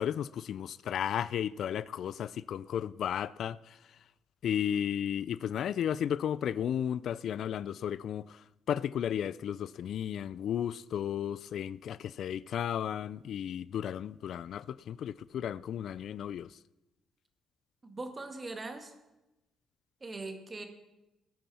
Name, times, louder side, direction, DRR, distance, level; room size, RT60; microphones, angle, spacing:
voice 1, 0.0-3.8 4.4-16.6, left 9 dB, 70° left, 0.3 m, -34 dB
voice 2, 17.8-18.9 20.0-20.7, right 2 dB, 30° right, 1.9 m, -41 dB
19.0 x 9.3 x 4.3 m
cardioid pair, 90°, 0 cm